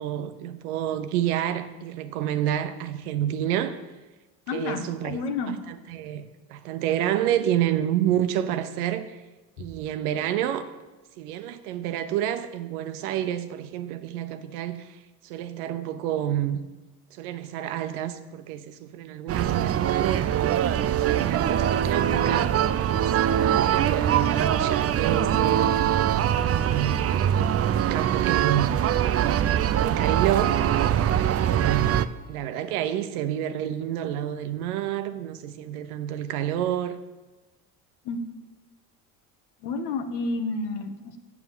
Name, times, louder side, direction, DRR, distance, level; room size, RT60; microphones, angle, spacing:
voice 1, 0.0-3.8 4.5-5.2 5.7-9.2 9.6-10.7 11.2-16.7 17.1-20.3 21.1-25.9 26.4-27.0 27.9-28.7 29.2-31.1 31.4-37.0, right 11 dB, 85° right, 0.9 m, -29 dB
voice 2, 4.5-5.6 9.6-9.7 38.0-38.4 39.6-41.2, left 3 dB, 65° left, 1.4 m, -30 dB
sound 1, 19.3-32.0, right 10 dB, 35° right, 0.5 m, -23 dB
8.2 x 7.3 x 7.3 m
hypercardioid pair, 75°, 43 cm